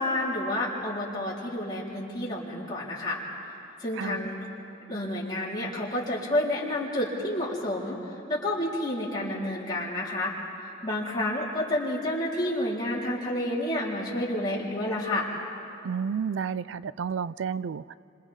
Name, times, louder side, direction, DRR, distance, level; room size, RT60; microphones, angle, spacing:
voice 1, 0.0-3.2 3.8-4.5 4.9-8.0 8.3-10.3 10.8-15.3, left 1 dB, 25° left, -6 dB, 3.9 m, -29 dB
voice 2, 4.0-4.3 15.8-17.9, right 6 dB, 80° right, 18 dB, 0.4 m, -31 dB
29.0 x 26.0 x 3.7 m, 2.8 s
head